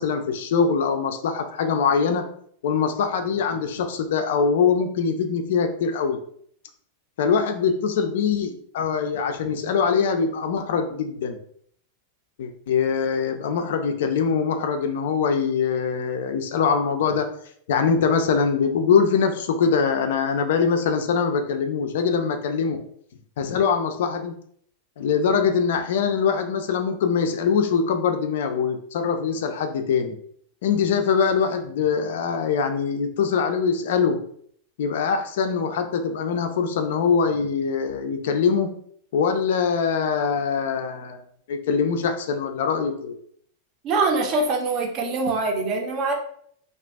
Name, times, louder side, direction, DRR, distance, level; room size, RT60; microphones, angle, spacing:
voice 1, 0.0-2.3 2.6-6.2 7.2-11.4 12.4-17.3 17.7-22.8 23.4-24.3 25.0-30.2 30.6-34.2 34.8-38.7 39.1-41.2 41.5-43.2, left 6 dB, 55° left, 6 dB, 0.3 m, -23 dB
voice 2, 43.8-46.1, right 3 dB, 35° right, 2 dB, 0.5 m, -23 dB
2.4 x 2.3 x 2.2 m, 0.64 s
figure-of-eight pair, 90°, 0 cm